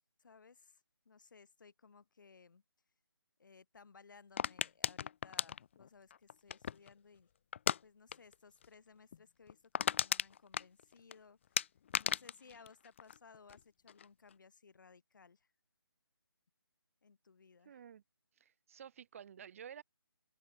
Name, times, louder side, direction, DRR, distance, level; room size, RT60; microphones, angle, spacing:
voice 1, 0.2-2.6 3.4-7.3 7.8-11.6 12.0-15.5 17.0-17.8, left 5 dB, 50° left, 5.8 m, -61 dB
sound 1, 4.4-6.9 7.5-7.8 8.1-8.3 8.6-8.7 9.1-9.2 9.5-11.1 11.6-13.6 13.9-14.3, left 8 dB, 30° left, 0.9 m, -36 dB
voice 2, 17.6-18.0 18.4-19.8, right 8 dB, 35° right, 7.9 m, -52 dB
open air
figure-of-eight pair, 150°, 13 cm